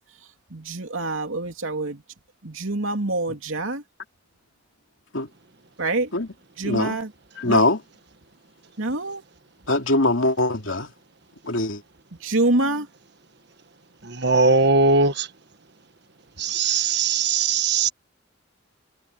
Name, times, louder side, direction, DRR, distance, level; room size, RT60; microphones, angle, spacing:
voice 1, 0.5-2.0 2.4-3.8 5.8-6.1 6.6-7.1 7.4-7.6 8.8-9.2 12.2-12.9, right 2 dB, 75° right, 2.8 m, -26 dB
voice 2, 6.6-6.9 7.4-7.8 9.7-10.9 11.5-11.8, left 2 dB, 70° left, 2.8 m, -22 dB
voice 3, 14.1-15.3 16.4-17.9, right 4 dB, 55° right, 1.4 m, -20 dB
head